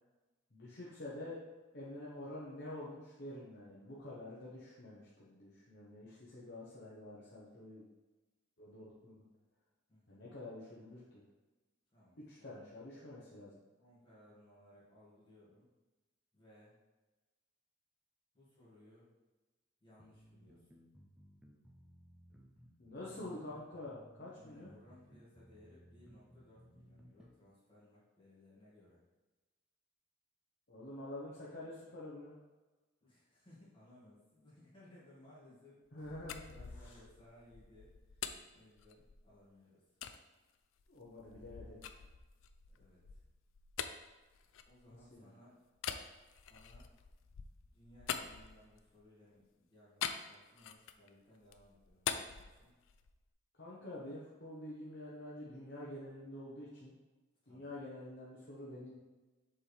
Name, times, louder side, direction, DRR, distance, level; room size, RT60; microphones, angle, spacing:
voice 1, 0.5-1.4 1.7-7.8 8.6-9.2 10.1-11.2 12.2-13.6 22.3-22.4 22.8-24.7 30.7-32.3 35.9-36.4 36.7-37.0 40.9-41.8 45.1-45.3 53.6-56.9 57.5-59.0, left 1 dB, 55° left, -7 dB, 1.1 m, -48 dB
voice 2, 9.9-10.2 11.9-12.2 13.8-15.7 16.3-16.8 18.3-19.1 19.8-20.8 24.3-29.0 33.0-36.1 36.5-39.8 42.7-43.2 44.7-45.6 46.3-46.9 47.7-52.7 57.4-57.7, left 1 dB, 25° left, -9 dB, 2.1 m, -62 dB
sound 1, 20.0-27.4, equal, 5° right, 0.5 m, -61 dB
sound 2, 35.9-39.4 40.0-40.2 40.8-45.2 45.8-49.0 50.0-51.1 51.4-53.2, left 8 dB, 80° left, 0.4 m, -45 dB
7.3 x 4.4 x 3.4 m, 1.2 s
head